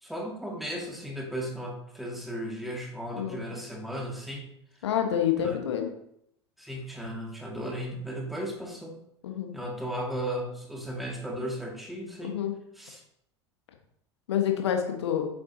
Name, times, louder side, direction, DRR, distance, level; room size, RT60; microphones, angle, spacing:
voice 1, 0.0-4.5 5.4-5.6 6.6-9.0 9.5-12.5 12.8-13.0, equal, ahead, -1 dB, 2.1 m, -35 dB
voice 2, 4.8-5.9 9.2-9.5 12.2-12.5 14.3-15.3, left 9 dB, 70° left, 4 dB, 1.4 m, -27 dB
8.2 x 7.4 x 2.8 m, 0.72 s
figure-of-eight pair, 75°, 15 cm